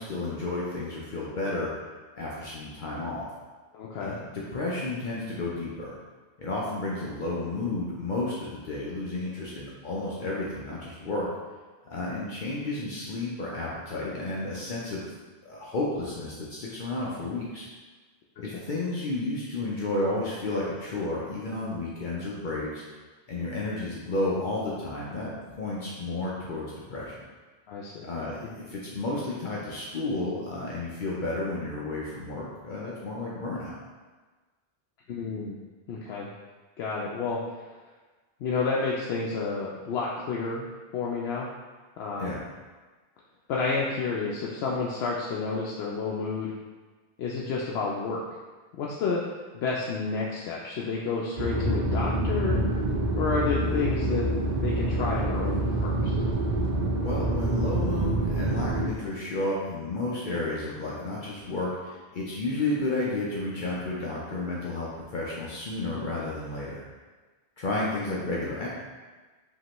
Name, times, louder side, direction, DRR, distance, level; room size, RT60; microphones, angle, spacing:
voice 1, 0.0-1.7 2.2-3.3 4.0-5.9 6.4-11.3 11.9-15.0 15.4-17.6 18.4-22.8 23.3-27.1 28.0-33.7 42.2-42.4 57.0-66.8 67.6-68.7, left 2 dB, 55° left, -5 dB, 0.7 m, -32 dB
voice 2, 3.7-4.1 18.5-18.6 27.7-28.1 35.1-35.5 35.9-36.3 36.8-37.4 38.4-40.7 40.9-41.5 42.0-42.3 43.5-46.5 47.2-48.2 48.8-49.2 49.5-52.6 53.2-54.3 54.6-56.1, left 4 dB, 85° left, -4 dB, 0.8 m, -30 dB
sound 1, 51.4-58.9, right 1 dB, 50° right, 0.8 m, -27 dB
5.3 x 2.9 x 3.0 m, 1.3 s
omnidirectional pair, 1.0 m